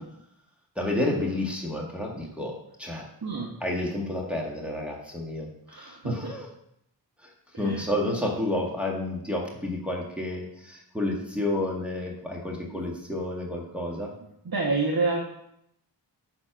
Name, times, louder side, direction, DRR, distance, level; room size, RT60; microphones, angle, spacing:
voice 1, 0.8-3.1 3.6-6.5 7.2-7.3 7.6-14.1, left 1 dB, 5° right, -3 dB, 2.1 m, -30 dB
voice 2, 3.2-3.5 5.7-6.3 7.5-7.9 12.7-12.8 14.4-15.2, right 3 dB, 50° right, -1 dB, 1.3 m, -28 dB
9.9 x 4.4 x 6.2 m, 0.76 s
wide cardioid pair, 60°, 46 cm